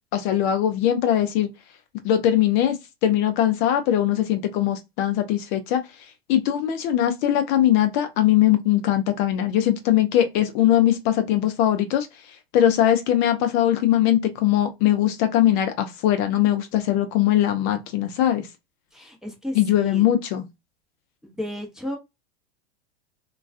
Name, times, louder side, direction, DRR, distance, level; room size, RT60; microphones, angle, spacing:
voice 1, 0.1-1.5 2.0-5.8 6.3-12.1 12.5-18.5 19.5-20.4, left 11 dB, 50° left, 0.5 m, -21 dB
voice 2, 18.9-20.0 21.2-22.0, left 1 dB, ahead, 0.6 m, -33 dB
2.3 x 2.3 x 2.4 m
hypercardioid pair, 100°, 31 cm